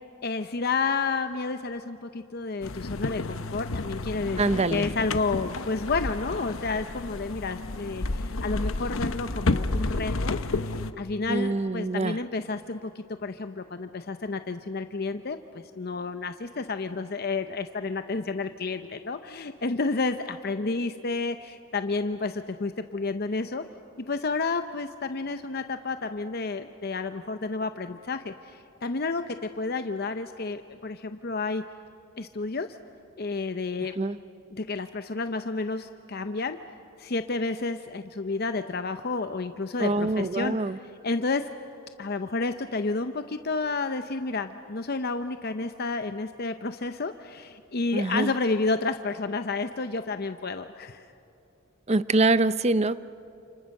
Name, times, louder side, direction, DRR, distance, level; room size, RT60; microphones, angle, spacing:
voice 1, 0.2-10.6 11.0-23.6 24.1-31.6 32.2-32.7 33.2-33.9 34.5-36.6 37.0-40.6 41.0-41.4 42.0-51.1, left 3 dB, 50° left, 9 dB, 0.7 m, -30 dB
sound 1, 2.6-10.9, left 2 dB, 80° left, 1.0 m, -31 dB
voice 2, 4.4-4.9 11.3-12.2 34.0-34.2 39.8-40.8 47.9-48.3 51.9-53.0, right 2 dB, 30° right, 15 dB, 0.6 m, -25 dB
29.5 x 28.0 x 6.5 m, 2.7 s
head